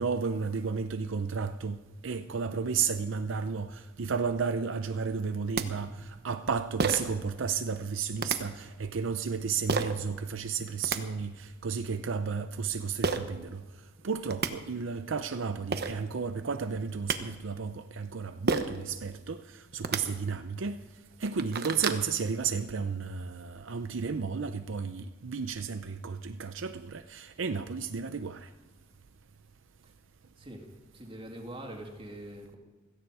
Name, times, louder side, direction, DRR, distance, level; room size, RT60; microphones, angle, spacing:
voice 1, 0.0-1.8 2.0-13.6 14.0-20.8 21.2-28.5, right 5 dB, 70° right, 0.6 m, -33 dB
sound 1, 5.2-5.3 5.6-5.7 6.8-7.2 8.2-8.4 9.7-9.9 10.6-11.0 13.0-13.2 14.0-14.1 14.3-14.5 15.4-15.5 15.7-15.9 16.8-17.2 18.5-18.8 19.7-20.0 20.6-20.7 21.1-22.0, right 4 dB, 50° right, 1.0 m, -29 dB
voice 2, 30.4-32.6, right 1 dB, 25° right, 2.4 m, -44 dB
17.0 x 15.0 x 4.9 m
head